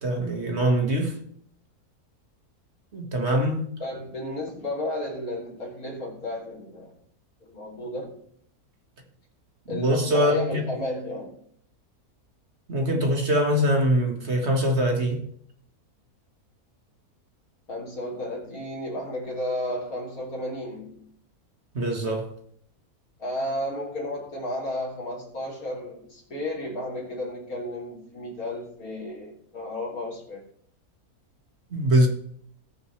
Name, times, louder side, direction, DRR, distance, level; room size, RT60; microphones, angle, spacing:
voice 1, 0.0-1.2 2.9-3.7 9.7-10.6 12.7-15.2 21.8-22.3 31.7-32.1, equal, 45° right, 2.0 m, -23 dB
voice 2, 3.8-7.0 7.4-8.2 9.7-11.4 17.7-21.1 23.2-30.4, left 1 dB, 70° left, 3.6 m, -33 dB
19.0 x 6.8 x 3.3 m
omnidirectional pair, 1.6 m